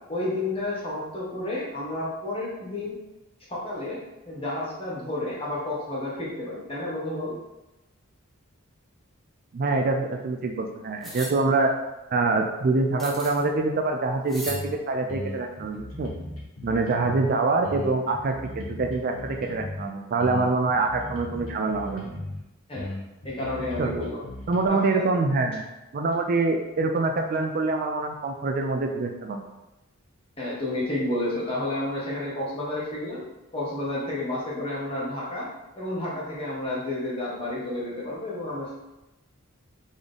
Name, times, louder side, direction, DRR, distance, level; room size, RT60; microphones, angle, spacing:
voice 1, 0.1-3.0 3.5-4.0 4.3-7.3 22.7-22.9 23.2-24.2 24.7-25.1 30.4-33.2 33.5-35.5 35.8-38.8, left 1 dB, 25° left, -6 dB, 1.2 m, -31 dB
voice 2, 9.5-11.7 12.1-16.1 16.6-22.1 23.8-23.9 24.5-25.6 25.9-29.4, right 3 dB, 45° right, 4 dB, 0.3 m, -25 dB
sound 1, 11.0-11.3 13.0-13.4 14.3-14.6, equal, ahead, 0.6 m, -37 dB
sound 2, 14.5-14.7 15.1-17.3 17.6-19.9 20.2-22.4 22.7-24.7, left 1 dB, 80° left, 1.1 m, -37 dB
4.0 x 3.6 x 3.4 m, 0.98 s
head